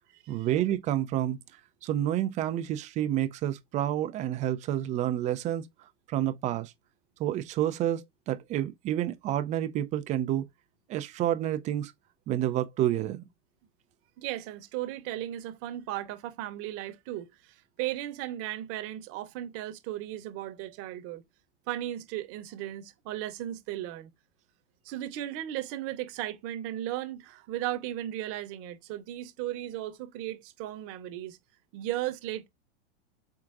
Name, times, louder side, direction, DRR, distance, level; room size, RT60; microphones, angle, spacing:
voice 1, 0.3-1.4 1.8-5.7 6.1-6.7 7.2-10.5 10.9-11.9 12.3-13.3, right 12 dB, 20° right, 0.3 m, -29 dB
voice 2, 14.2-21.2 21.7-24.1 24.8-31.4 31.7-32.5, right 13 dB, 40° right, 0.9 m, -36 dB
4.6 x 3.7 x 2.5 m
hypercardioid pair, 120°, 35 cm